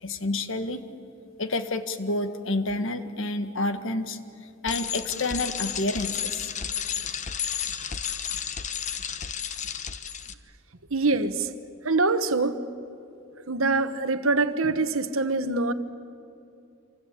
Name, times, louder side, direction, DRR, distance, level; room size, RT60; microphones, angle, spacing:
voice 1, 0.0-0.8 1.4-4.2 4.6-6.5, left 2 dB, 60° left, 1.7 m, -29 dB
Bicycle, 4.7-10.3, left 8 dB, 35° left, 1.1 m, -32 dB
voice 2, 10.9-11.5 11.8-12.6 13.5-15.7, right 3 dB, 70° right, 1.3 m, -24 dB
27.0 x 26.0 x 8.6 m
head